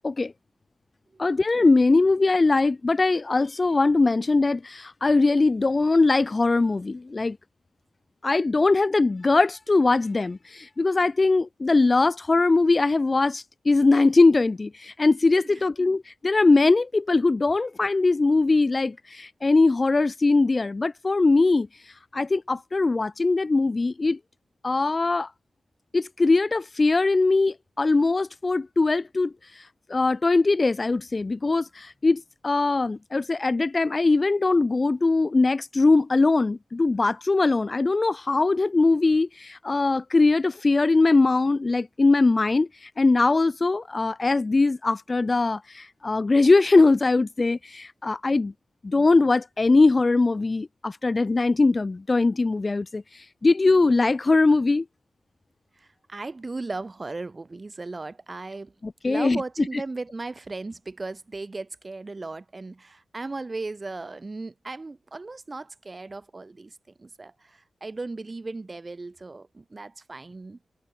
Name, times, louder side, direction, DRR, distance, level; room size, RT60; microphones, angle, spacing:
voice 1, 1.2-7.4 8.2-21.7 22.1-24.2 24.6-25.3 25.9-29.6 29.9-48.5 48.8-54.8 58.8-59.4, left 3 dB, 35° left, 0.4 m, -21 dB
voice 2, 55.8-58.7 59.0-70.6, right 3 dB, 35° right, 3.6 m, -36 dB
wide cardioid pair, 85°, 0 cm